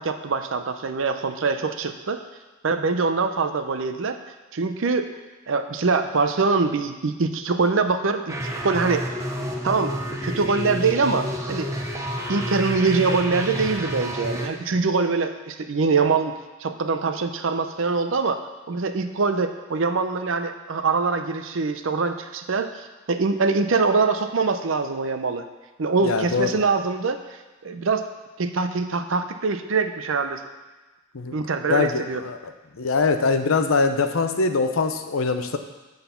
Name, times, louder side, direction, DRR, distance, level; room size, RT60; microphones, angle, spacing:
voice 1, 0.0-2.2 2.6-4.2 4.5-5.1 5.5-8.3 8.6-9.0 9.6-9.9 10.2-11.7 12.3-16.3 16.6-25.4 25.8-27.2 27.6-28.0 28.4-30.4 31.3-32.2, right 4 dB, 70° right, 8 dB, 0.6 m, -23 dB
sound 1, 8.3-14.5, equal, 15° right, 0.8 m, -29 dB
voice 2, 26.0-26.6 31.1-31.3 31.7-32.4 32.8-35.6, left 4 dB, 80° left, 8 dB, 0.7 m, -22 dB
8.9 x 3.9 x 6.9 m, 1.2 s
head